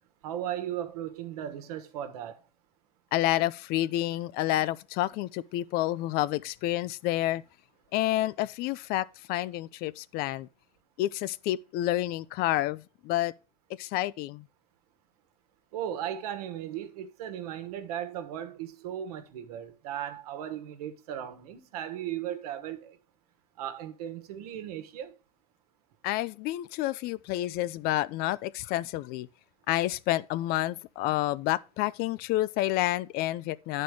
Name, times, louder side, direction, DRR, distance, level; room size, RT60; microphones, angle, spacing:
voice 1, 0.2-2.4 15.7-23.0 23.6-25.1, right 10 dB, 75° right, 1.3 m, -36 dB
voice 2, 3.1-7.4 7.9-10.5 11.0-13.3 13.8-14.4 26.0-29.3 29.7-33.8, left 15 dB, 50° left, 0.5 m, -29 dB
10.0 x 4.4 x 4.8 m
hypercardioid pair, 90°, 20 cm